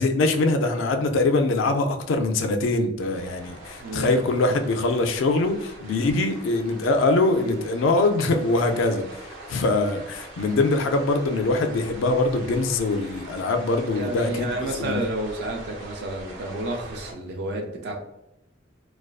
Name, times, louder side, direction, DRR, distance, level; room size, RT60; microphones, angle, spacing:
voice 1, 0.0-15.0, left 2 dB, 85° left, 6 dB, 0.3 m, -23 dB
sound 1, 3.1-17.1, right 2 dB, 85° right, 0.8 m, -43 dB
voice 2, 3.8-4.1 13.9-18.0, right 1 dB, 60° right, 1 dB, 0.4 m, -30 dB
2.4 x 2.2 x 2.3 m, 0.84 s
head